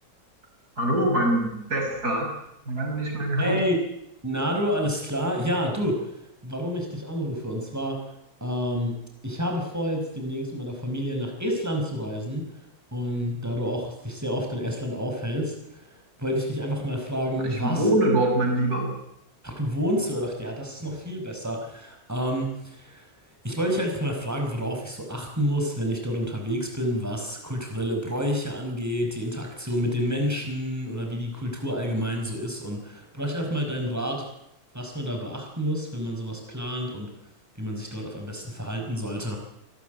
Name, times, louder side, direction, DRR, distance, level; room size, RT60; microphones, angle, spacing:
voice 1, 0.8-2.3 2.7-3.6 17.4-18.9, right 1 dB, 90° right, 2 dB, 6.5 m, -24 dB
voice 2, 3.4-3.8 4.2-6.1 6.4-8.0 8.4-8.9 9.2-12.5 12.9-15.9 16.2-17.8 19.4-23.1 23.4-34.2 34.7-37.1 37.6-39.4, equal, 10° right, 2 dB, 5.0 m, -29 dB
28.0 x 12.5 x 9.2 m, 0.82 s
omnidirectional pair, 1.6 m